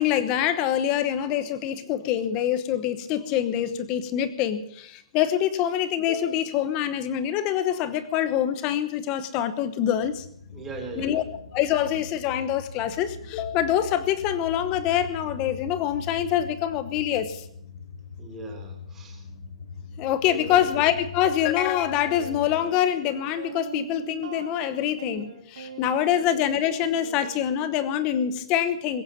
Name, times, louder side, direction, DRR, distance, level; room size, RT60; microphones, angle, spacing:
voice 1, 0.0-10.2 10.9-11.3 11.5-17.4 20.0-29.0, left 10 dB, 20° left, 12 dB, 1.0 m, -25 dB
sound 1, 10.0-22.7, left 4 dB, 80° left, 2.5 m, -41 dB
voice 2, 10.5-11.2 18.2-19.2 20.3-20.7, right 2 dB, 10° right, 1 dB, 3.1 m, -39 dB
sound 2, 21.2-21.4 22.0-28.4, right 5 dB, 60° right, 4.2 m, -42 dB
21.5 x 9.0 x 7.4 m, 0.69 s
hypercardioid pair, 175°, 3 cm